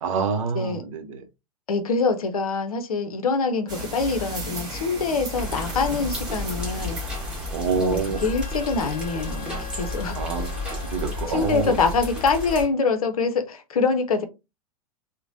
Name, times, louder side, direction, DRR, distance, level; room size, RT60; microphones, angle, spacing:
voice 1, 0.0-1.2 7.5-8.2 10.1-10.6 10.9-11.7, right 6 dB, 55° right, 0.7 m, -26 dB
voice 2, 1.7-7.0 7.8-10.1 11.3-14.3, left 4 dB, 65° left, 0.6 m, -25 dB
sound 1, 3.7-8.4, equal, 20° right, 1.3 m, -36 dB
sound 2, 5.3-12.7, left 2 dB, 5° right, 1.4 m, -32 dB
Harmonica, 8.0-12.9, left 5 dB, 25° left, 0.8 m, -43 dB
3.0 x 2.1 x 2.5 m
figure-of-eight pair, 95°, 19 cm